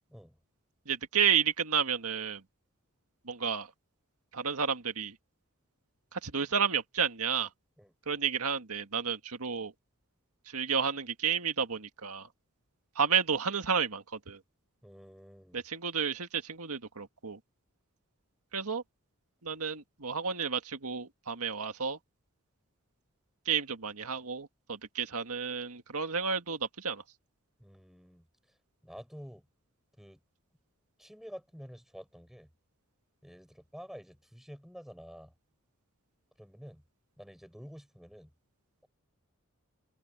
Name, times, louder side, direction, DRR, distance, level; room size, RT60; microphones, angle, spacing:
voice 1, 0.8-2.4 3.3-3.7 4.3-5.1 6.1-7.5 8.1-9.7 10.5-12.3 12.9-14.4 15.5-17.4 18.5-18.8 19.4-22.0 23.4-27.0, right 7 dB, 85° right, 1.8 m, -31 dB
voice 2, 14.8-15.6 27.6-28.3 28.8-29.5 30.0-30.2 31.0-32.5 33.2-35.3 36.4-36.8 37.2-38.3, equal, ahead, 7.4 m, -49 dB
head